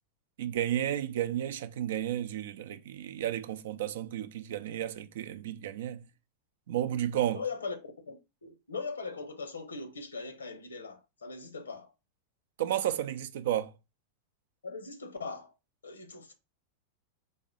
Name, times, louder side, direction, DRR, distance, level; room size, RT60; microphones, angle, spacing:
voice 1, 0.4-6.0 6.7-7.4 12.6-13.7, right 11 dB, 55° right, 0.5 m, -32 dB
voice 2, 7.3-11.9 14.6-15.5 15.8-16.3, left 4 dB, 75° left, 0.9 m, -40 dB
4.2 x 3.2 x 3.8 m
figure-of-eight pair, 90°, 0 cm